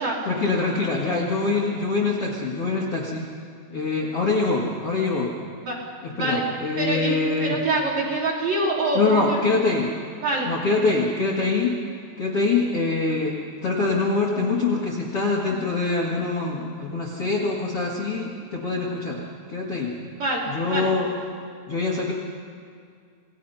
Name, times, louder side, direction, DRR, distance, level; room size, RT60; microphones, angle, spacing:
voice 1, 0.3-3.3 3.7-5.3 6.0-7.6 8.9-9.9 10.5-11.8 12.2-19.2 19.5-19.9 20.5-21.1 21.7-22.1, left 3 dB, 45° left, -3 dB, 2.1 m, -24 dB
voice 2, 6.1-6.4 6.8-9.4 10.2-10.5 20.1-20.4 20.7-20.9, right 2 dB, 40° right, -3 dB, 4.2 m, -25 dB
29.0 x 19.0 x 5.6 m, 2.2 s
omnidirectional pair, 5.0 m